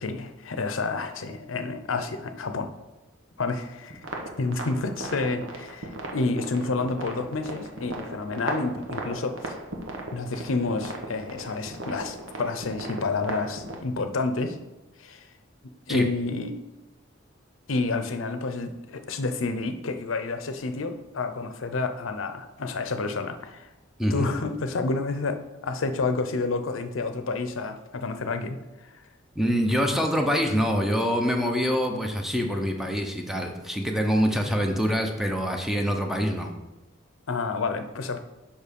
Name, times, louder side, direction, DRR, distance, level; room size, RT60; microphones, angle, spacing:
voice 1, 0.0-2.7 3.4-4.0 4.4-9.6 10.1-14.6 15.0-15.3 15.9-16.6 17.7-23.7 24.1-28.9 37.3-38.2, left 3 dB, 85° left, 8 dB, 0.7 m, -29 dB
sound 1, 3.9-13.8, right 2 dB, 80° right, 1.3 m, -37 dB
voice 2, 29.4-36.5, equal, ahead, 3 dB, 0.7 m, -25 dB
6.9 x 5.5 x 5.2 m, 1.0 s
head